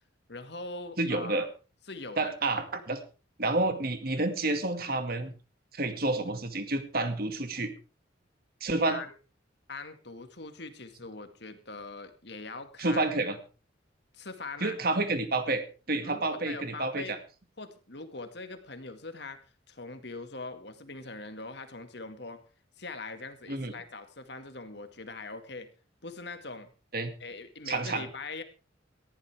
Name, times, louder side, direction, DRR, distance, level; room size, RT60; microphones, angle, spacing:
voice 1, 0.3-1.5 1.9-2.4 8.9-9.1 9.7-13.1 14.1-14.8 16.0-17.2 17.6-22.4 22.8-25.7 26.0-26.7 27.2-28.4, left 3 dB, 60° left, 8 dB, 2.2 m, -42 dB
voice 2, 1.0-1.5 2.2-3.0 3.4-5.3 5.7-7.7 8.6-9.0 12.8-13.4 14.6-17.2 23.5-23.7 26.9-27.1 27.7-28.0, right 2 dB, 50° right, 8 dB, 2.2 m, -29 dB
19.0 x 15.0 x 3.6 m, 0.34 s
head